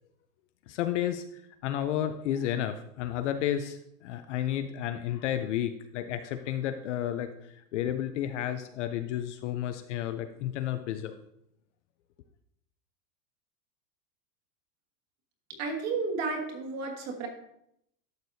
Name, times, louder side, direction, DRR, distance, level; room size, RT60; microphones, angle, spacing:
voice 1, 0.7-11.1, left 11 dB, 50° left, 9 dB, 0.5 m, -32 dB
voice 2, 15.6-17.3, right 4 dB, 30° right, 3 dB, 1.5 m, -32 dB
12.0 x 6.6 x 2.7 m, 0.76 s
supercardioid pair, 165°, 49 cm